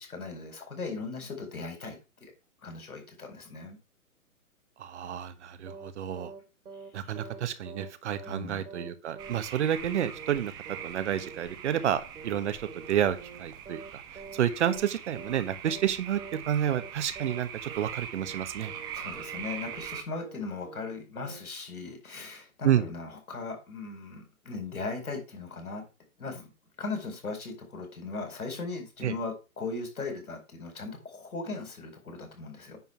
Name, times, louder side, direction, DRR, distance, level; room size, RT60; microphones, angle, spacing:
voice 1, 0.0-2.3 2.6-3.8 6.7-7.1 8.3-8.6 18.9-25.9 26.2-26.5 26.8-32.8, left 3 dB, 80° left, 4 dB, 4.7 m, -38 dB
voice 2, 4.8-6.3 6.9-18.7 22.6-22.8 29.0-29.2, right 10 dB, 50° right, 11 dB, 1.4 m, -30 dB
sound 1, 5.7-5.9 6.2-6.4 6.7-6.9 7.2-7.4 7.7-8.4 8.7-8.9 9.2-9.4 9.7-9.9 10.2-10.4 10.7-10.9 11.2-11.4 11.7-11.9 12.2-12.4 12.7-12.9 13.2-13.4 13.7-13.9 14.2-14.4 14.7-14.9 15.2-15.4 15.7-15.9 16.2-16.4 16.7-16.9 17.2-17.4 17.7-17.9 18.2-18.4 18.7-18.9 19.2-19.4 19.7-19.9 20.2-20.4 20.7-20.9 21.2-21.4, right 4 dB, 80° right, 2.8 m, -45 dB
sound 2, 9.2-20.0, right 9 dB, 10° right, 0.5 m, -42 dB
9.5 x 4.4 x 6.0 m, 0.29 s
hypercardioid pair, 135°, 43 cm